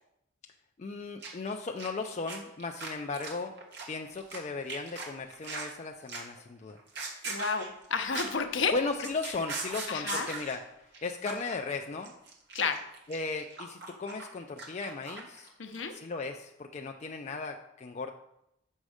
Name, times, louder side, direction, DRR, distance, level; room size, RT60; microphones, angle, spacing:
voice 1, 0.8-3.5 3.9-6.8 8.7-10.6 11.0-12.1 13.1-15.5 15.9-18.1, left 3 dB, 35° left, 4 dB, 0.3 m, -36 dB
sound 1, 1.2-1.5 1.8-4.4 4.7-5.7 6.1-6.4 6.8-8.4 8.7-10.6 10.9-11.0 11.2-11.5 11.8-15.5 15.7-15.9, right 3 dB, 50° right, 1.2 m, -40 dB
voice 2, 7.2-8.7 9.9-10.3 12.5-12.8 15.6-15.9, left 5 dB, 65° left, 7 dB, 0.7 m, -31 dB
6.3 x 5.2 x 4.9 m, 0.83 s
head